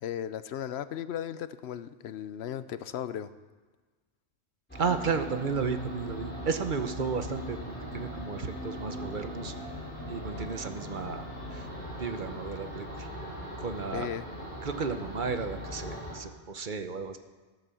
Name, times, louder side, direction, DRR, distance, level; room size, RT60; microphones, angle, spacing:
voice 1, 0.0-3.3 13.9-14.2, left 10 dB, 70° left, 14 dB, 0.8 m, -36 dB
sound 1, 4.7-16.1, equal, 10° left, 4.6 m, -40 dB
voice 2, 4.8-7.6 7.9-9.5 10.1-11.3 11.5-11.7 12.0-13.1 13.6-14.1 14.6-17.2, right 5 dB, 45° right, 8 dB, 1.0 m, -33 dB
13.5 x 9.0 x 7.0 m, 1.3 s
omnidirectional pair, 1.2 m